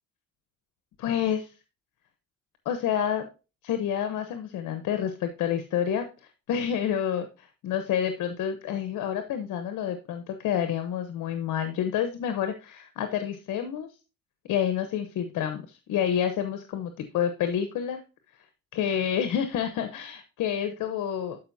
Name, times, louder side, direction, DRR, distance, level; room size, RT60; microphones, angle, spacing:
voice 1, 1.0-1.5 2.7-3.2 3.6-6.1 6.5-13.9 14.5-18.0 18.7-21.4, left 9 dB, 85° left, 8 dB, 1.0 m, -28 dB
12.0 x 5.1 x 2.7 m, 0.30 s
cardioid pair, 90°, 30 cm